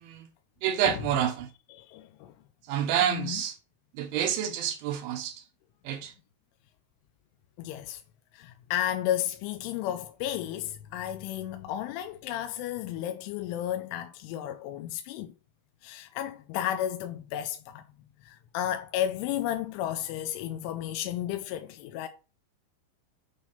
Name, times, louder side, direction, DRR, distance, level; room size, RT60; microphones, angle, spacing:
voice 1, 0.6-1.5 2.7-3.6 4.0-5.4 5.9-6.1, right 9 dB, 75° right, 3.6 m, -28 dB
voice 2, 1.7-2.3 3.0-3.4 7.6-8.0 8.3-15.3 15.8-17.8 18.2-22.1, left 11 dB, 90° left, 3.1 m, -33 dB
8.8 x 3.6 x 5.7 m
omnidirectional pair, 5.5 m